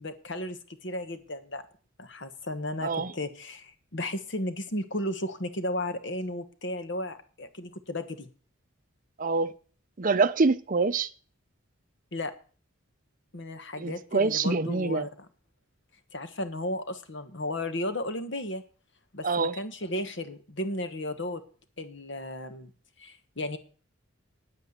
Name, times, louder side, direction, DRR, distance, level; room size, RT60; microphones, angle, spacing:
voice 1, 0.0-1.6 2.0-8.3 12.1-12.3 13.3-15.3 16.1-18.6 19.1-21.4 21.8-22.7 23.0-23.6, left 1 dB, 55° left, 1.3 m, -34 dB
voice 2, 9.2-9.5 10.0-11.1 13.8-15.1 19.2-19.6, right 4 dB, 40° right, 0.6 m, -25 dB
9.1 x 8.3 x 8.1 m
head